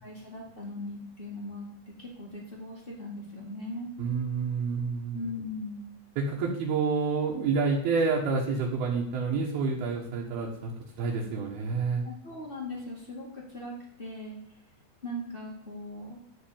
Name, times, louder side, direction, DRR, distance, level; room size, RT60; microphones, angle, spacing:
voice 1, 0.0-1.6 2.0-3.9 5.1-5.8 12.0-14.4 15.0-16.2, left 1 dB, 65° left, -3 dB, 0.5 m, -39 dB
voice 2, 4.0-5.2 6.2-10.7 11.0-12.0, right 4 dB, 70° right, -3 dB, 3.2 m, -28 dB
13.0 x 4.4 x 8.6 m, 0.74 s
omnidirectional pair, 5.0 m